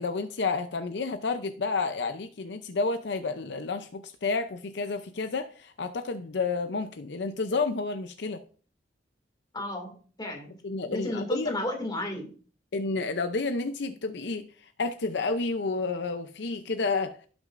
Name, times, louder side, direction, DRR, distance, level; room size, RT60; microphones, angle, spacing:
voice 1, 0.0-8.4 10.6-11.6 12.7-17.2, left 3 dB, 65° left, 0.6 m, -30 dB
voice 2, 9.5-10.5 10.9-12.3, left 1 dB, 25° left, 2.3 m, -33 dB
17.0 x 6.2 x 2.5 m
head